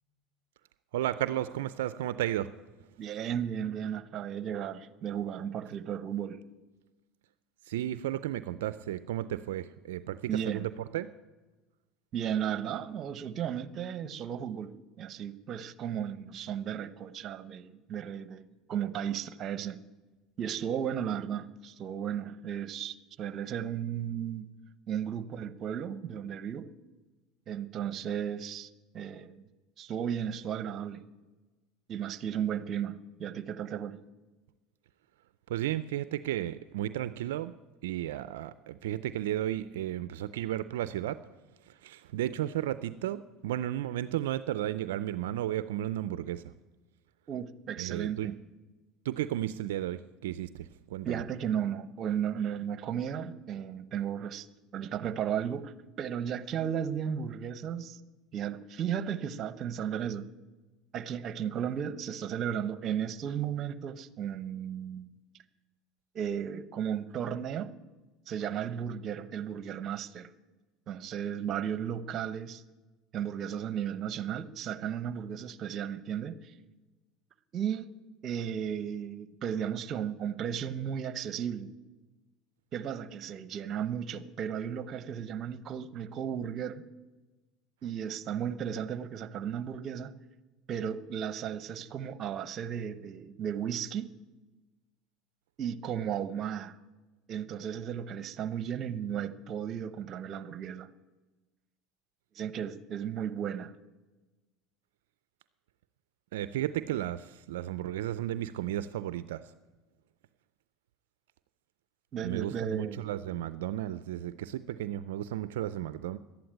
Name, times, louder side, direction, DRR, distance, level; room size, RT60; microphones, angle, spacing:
voice 1, 0.9-2.5 7.7-11.1 35.5-37.5 37.8-41.2 41.7-46.4 47.8-48.3 49.0-51.2 106.3-109.5 112.2-116.2, right 13 dB, 85° right, 0.4 m, -33 dB
voice 2, 3.0-6.4 10.3-10.7 12.1-19.8 20.4-24.5 24.9-26.7 27.5-29.4 29.8-31.1 31.9-34.0 47.3-48.4 51.0-54.5 54.7-58.0 58.3-60.3 60.9-65.1 66.1-67.7 68.3-70.3 70.9-72.6 73.1-76.5 77.5-77.9 78.2-81.7 82.7-86.8 87.8-90.1 90.7-94.1 95.6-96.8 97.3-100.9 102.3-103.7 112.1-113.1, right 8 dB, 45° right, 0.9 m, -35 dB
12.0 x 9.4 x 9.0 m
supercardioid pair, 90°, 0 cm